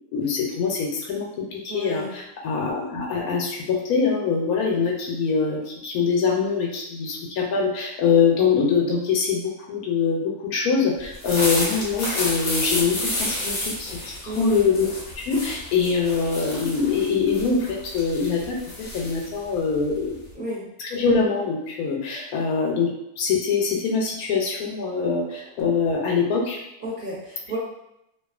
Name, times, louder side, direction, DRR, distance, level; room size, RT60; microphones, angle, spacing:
voice 1, 0.1-14.9 15.2-18.6 18.9-20.2 20.9-22.9 23.2-26.6, left 5 dB, 90° left, -1 dB, 1.1 m, -23 dB
voice 2, 1.7-2.1 14.2-14.7 20.3-20.6 26.8-27.6, right 1 dB, 40° right, -8 dB, 0.9 m, -32 dB
sound 1, 11.0-20.3, left 1 dB, 50° left, 0.5 m, -31 dB
2.6 x 2.3 x 2.3 m, 0.82 s
omnidirectional pair, 1.5 m